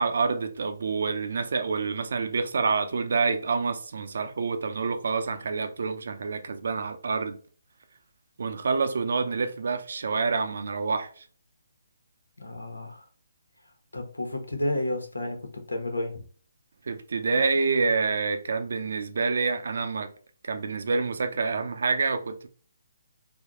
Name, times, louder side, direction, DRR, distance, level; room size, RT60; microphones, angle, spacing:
voice 1, 0.0-7.4 8.4-11.2 16.9-20.1 20.4-22.5, right 4 dB, 65° right, 0.6 m, -27 dB
voice 2, 12.4-13.0 13.9-15.4 15.7-16.2, left 1 dB, 90° left, 1.0 m, -31 dB
3.5 x 2.2 x 3.7 m
figure-of-eight pair, 145°, 0 cm